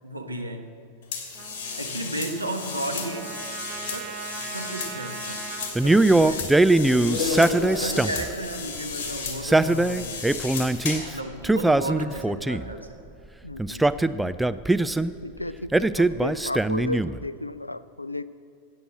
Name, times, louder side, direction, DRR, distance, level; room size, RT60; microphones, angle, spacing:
voice 1, 0.0-0.7 1.8-3.3 3.9-5.5 5.7-6.7 7.0-7.2 7.6-10.3 11.0-13.0, right 1 dB, 85° right, 4 dB, 1.2 m, -34 dB
sound 1, 1.1-11.1, left 4 dB, 50° left, 3.0 m, -33 dB
Trumpet, 1.3-5.7, right 7 dB, 35° right, 1.7 m, -40 dB
Male speech man speaking, 5.8-8.3 9.3-11.0 11.4-12.7 13.6-15.1 15.7-17.2, right 2 dB, 5° right, 0.3 m, -21 dB
voice 2, 5.9-6.3 13.4-14.3 15.2-18.2, left 2 dB, 85° left, 17 dB, 0.4 m, -34 dB
13.5 x 8.7 x 7.7 m, 2.4 s
figure-of-eight pair, 90°, 0 cm